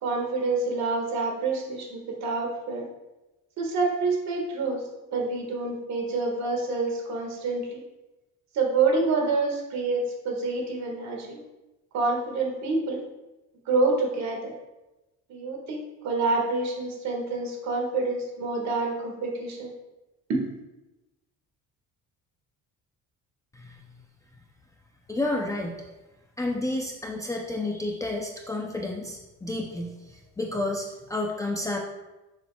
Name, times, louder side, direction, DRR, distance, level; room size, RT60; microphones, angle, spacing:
voice 1, 0.0-2.9 3.6-4.8 5.1-7.8 8.5-11.4 11.9-13.0 13.7-14.5 15.3-19.7 20.3-20.4, right 3 dB, 55° right, 1 dB, 1.7 m, -27 dB
voice 2, 25.1-25.8 26.4-31.8, left 2 dB, 10° left, 0 dB, 0.5 m, -31 dB
10.5 x 7.0 x 2.3 m, 1.0 s
cardioid pair, 175°, 33 cm